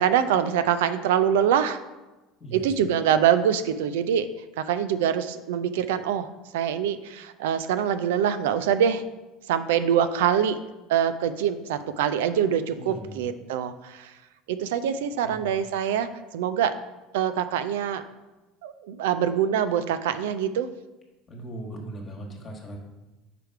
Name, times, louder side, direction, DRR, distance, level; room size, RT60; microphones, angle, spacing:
voice 1, 0.0-1.8 2.5-4.3 4.6-6.3 6.5-9.0 9.5-10.6 10.9-14.1 14.5-16.7 17.1-18.0 18.6-20.7, right 9 dB, 85° right, 12 dB, 0.4 m, -24 dB
voice 2, 2.4-2.7 12.8-13.2 15.2-15.5 21.3-22.8, right 1 dB, 35° left, 0 dB, 1.4 m, -39 dB
5.0 x 4.7 x 4.6 m, 1.1 s
supercardioid pair, 95°, 0 cm